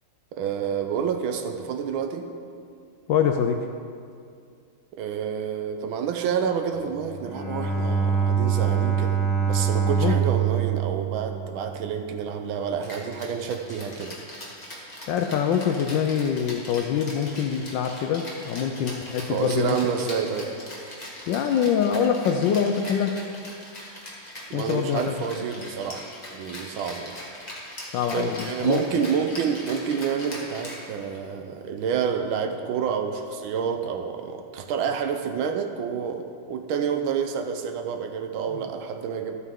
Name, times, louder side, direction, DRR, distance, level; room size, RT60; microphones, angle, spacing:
voice 1, 0.3-2.2 5.0-9.2 9.4-14.2 19.2-20.5 24.5-27.2 28.1-39.4, right 7 dB, 80° right, 6 dB, 1.5 m, -28 dB
voice 2, 3.1-3.6 10.0-10.1 15.1-19.8 21.3-23.2 24.5-25.1 27.9-28.8 38.5-38.7, left 7 dB, 75° left, 5 dB, 1.1 m, -24 dB
Bowed string instrument, 7.0-12.2, right 7 dB, 55° left, 1.7 m, -25 dB
Rattle (instrument), 12.8-31.3, left 1 dB, 20° left, 1.5 m, -40 dB
13.0 x 8.3 x 3.7 m, 2.3 s
omnidirectional pair, 2.2 m